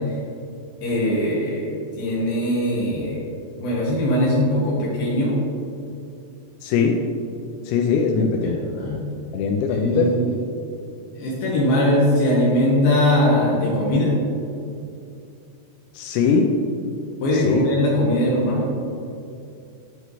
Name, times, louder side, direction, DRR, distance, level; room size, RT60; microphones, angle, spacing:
voice 1, 0.8-1.7 2.0-3.3 3.6-5.4 8.1-9.0 9.7-10.3 11.2-14.1 17.2-18.7, left 1 dB, 70° left, -6 dB, 2.2 m, -21 dB
voice 2, 6.6-7.0 7.7-8.6 9.3-10.1 15.9-16.5 17.3-17.7, left 5 dB, 90° left, 2 dB, 3.3 m, -21 dB
8.9 x 8.1 x 3.1 m, 2.5 s
omnidirectional pair, 5.9 m